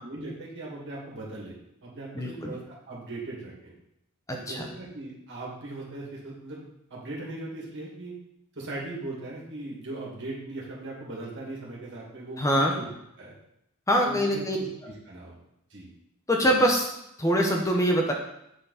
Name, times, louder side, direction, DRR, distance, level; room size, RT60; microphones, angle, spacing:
voice 1, 0.0-3.7 4.3-8.2 8.5-12.9 13.2-13.3 14.0-15.4 15.7-15.9, right 2 dB, 55° right, -4 dB, 2.3 m, -39 dB
voice 2, 2.1-2.5 4.3-4.7 12.4-12.7 13.9-14.6 16.3-16.9 17.2-18.1, equal, 15° left, 1 dB, 0.7 m, -24 dB
7.9 x 4.5 x 4.2 m, 0.81 s
head